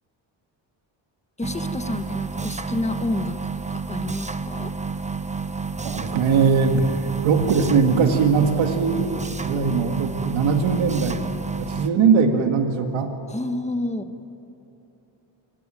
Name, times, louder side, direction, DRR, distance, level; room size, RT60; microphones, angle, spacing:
voice 1, 1.4-3.4 3.7-4.8 13.3-14.1, left 2 dB, 15° left, 7 dB, 1.7 m, -29 dB
sound 1, 1.4-11.9, right 4 dB, 15° right, 0.9 m, -30 dB
voice 2, 5.8-11.3 11.6-13.1, right 5 dB, 90° right, 4 dB, 2.1 m, -20 dB
27.0 x 21.5 x 9.2 m, 3.0 s
cardioid pair, 105°, 46 cm